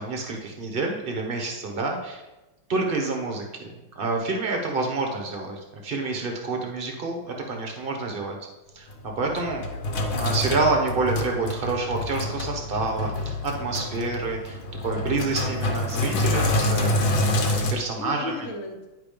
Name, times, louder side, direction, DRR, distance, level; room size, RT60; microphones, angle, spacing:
voice 1, 0.0-2.2 2.7-8.4 8.7-9.6 10.1-17.0 17.5-18.4, right 3 dB, 40° right, 2 dB, 0.8 m, -28 dB
Sink (filling or washing), 8.9-17.7, left 1 dB, 65° left, 1.7 m, -27 dB
voice 2, 9.7-10.5 13.0-13.3 18.0-18.9, left 2 dB, 50° left, 0 dB, 1.2 m, -38 dB
10.0 x 3.8 x 5.0 m, 1.1 s
omnidirectional pair, 2.4 m